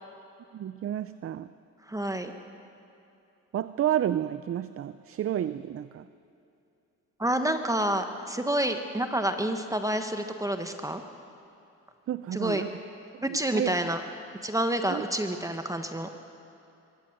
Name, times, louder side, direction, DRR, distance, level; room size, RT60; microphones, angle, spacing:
voice 1, 0.5-1.5 3.5-6.1 12.1-12.7 13.1-13.2 13.5-13.7 14.9-15.0, right 11 dB, 50° right, 14 dB, 0.5 m, -30 dB
voice 2, 1.9-2.3 7.2-11.0 12.3-12.7 13.2-14.0 14.4-16.1, right 1 dB, 10° right, 6 dB, 1.2 m, -28 dB
22.0 x 15.0 x 7.8 m, 2.7 s
cardioid pair, 90°, 30 cm